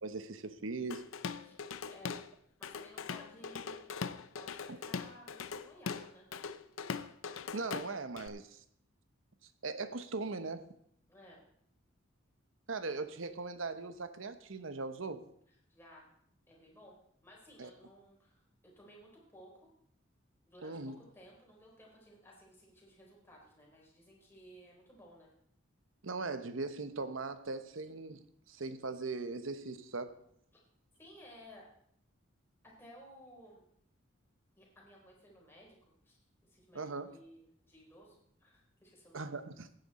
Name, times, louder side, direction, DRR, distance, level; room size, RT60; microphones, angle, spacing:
voice 1, 0.0-1.0 4.7-4.8 7.5-8.6 9.6-10.6 12.7-15.2 17.6-17.7 20.6-20.9 26.0-28.2 28.5-30.2 36.7-37.1 39.1-39.7, right 3 dB, 75° right, 11 dB, 0.9 m, -39 dB
Drum kit / Drum, 0.9-2.3 2.6-8.3, left 5 dB, 90° left, 0.6 m, -41 dB
voice 2, 2.6-6.3 11.1-11.4 15.7-16.1 16.5-19.7 20.5-25.3 31.0-31.7 32.6-33.6 34.6-35.8 36.0-39.3, equal, 10° left, -3 dB, 4.0 m, -57 dB
16.0 x 9.2 x 4.2 m, 0.68 s
head